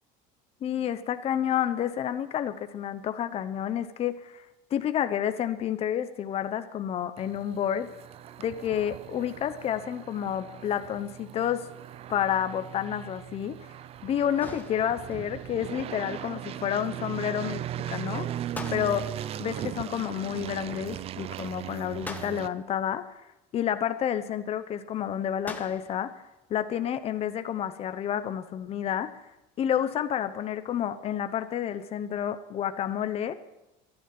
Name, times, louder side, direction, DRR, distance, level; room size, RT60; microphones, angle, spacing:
voice 1, 0.6-4.4 4.7-7.9 8.4-11.7 12.1-13.6 14.0-17.6 17.9-18.3 18.7-19.1 19.4-23.0 23.5-26.1 26.5-29.2 29.6-33.3, left 9 dB, 30° left, 10 dB, 0.9 m, -30 dB
sound 1, 7.2-22.5, right 11 dB, 30° right, 0.4 m, -38 dB
sound 2, 14.4-15.3 18.5-19.4 22.0-22.8 25.5-26.1, left 2 dB, 10° left, 1.2 m, -42 dB
14.0 x 11.5 x 7.7 m, 0.93 s
cardioid pair, 160°, 19 cm